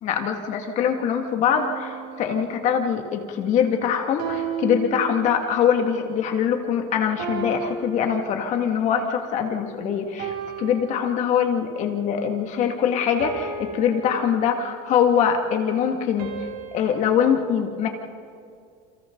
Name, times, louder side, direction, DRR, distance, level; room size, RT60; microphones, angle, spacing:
voice 1, 0.0-10.3 10.6-17.9, left 8 dB, 45° left, 4 dB, 2.3 m, -23 dB
sound 1, 1.5-3.1 4.2-5.7 7.2-8.9 10.2-11.7 13.2-14.9 16.2-17.2, right 6 dB, 55° right, 3.6 m, -35 dB
29.5 x 29.0 x 4.0 m, 2.3 s
cardioid pair, 155°, 18 cm